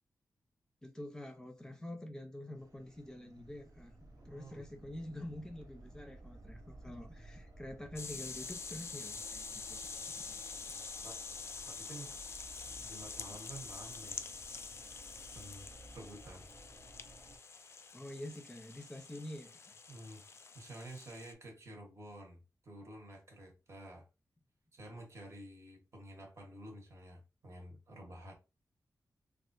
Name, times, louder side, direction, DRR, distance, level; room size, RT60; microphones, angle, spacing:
voice 1, 0.8-3.9 4.2-10.5 17.9-19.7, left 1 dB, 10° left, 0.7 m, -47 dB
sound 1, 2.5-17.4, right 1 dB, 70° right, 0.9 m, -56 dB
voice 2, 4.2-4.6 11.0-11.2 11.6-12.2 12.6-14.3 15.3-15.7 15.9-16.5 19.9-20.2 20.5-24.1 24.7-28.3, right 1 dB, 45° right, 1.2 m, -50 dB
sound 2, 8.0-21.3, left 4 dB, 40° left, 0.3 m, -46 dB
3.3 x 2.4 x 2.6 m
wide cardioid pair, 115°, 7 cm